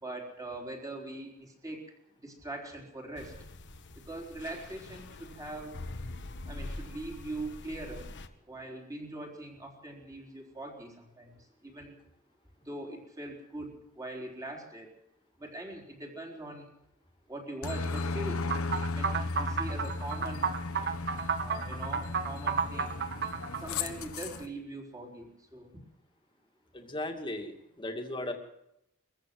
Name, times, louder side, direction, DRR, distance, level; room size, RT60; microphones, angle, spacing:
voice 1, 0.0-1.8 2.2-3.3 4.0-5.8 6.4-8.0 8.5-12.0 12.6-14.9 15.4-16.7 17.3-18.4 18.7-20.5 21.4-23.0 23.6-25.7, right 2 dB, 15° right, 1 dB, 4.2 m, -42 dB
sound 1, 3.2-8.3, left 2 dB, 55° left, 1.4 m, -44 dB
Aircraft, 17.6-24.5, left 3 dB, 70° left, 1.4 m, -35 dB
sound 2, 18.5-23.6, right 6 dB, 50° right, 1.3 m, -32 dB
voice 2, 26.7-28.3, left 1 dB, 20° left, 4 dB, 2.4 m, -37 dB
22.5 x 15.0 x 7.8 m, 0.82 s
head